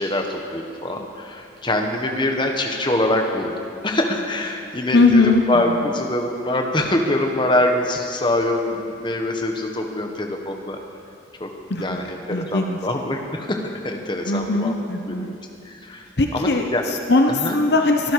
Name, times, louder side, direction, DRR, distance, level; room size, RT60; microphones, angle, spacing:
voice 1, 0.0-10.8 11.4-11.5 11.8-14.7 15.1-15.3 15.6-16.1 16.3-16.8 17.3-17.6, left 1 dB, 25° left, 3 dB, 1.4 m, -24 dB
voice 2, 4.9-5.6 11.7-12.0 12.3-12.8 14.2-15.3 16.2-18.1, left 3 dB, 60° left, 4 dB, 0.9 m, -19 dB
23.5 x 12.5 x 4.9 m, 2.6 s
head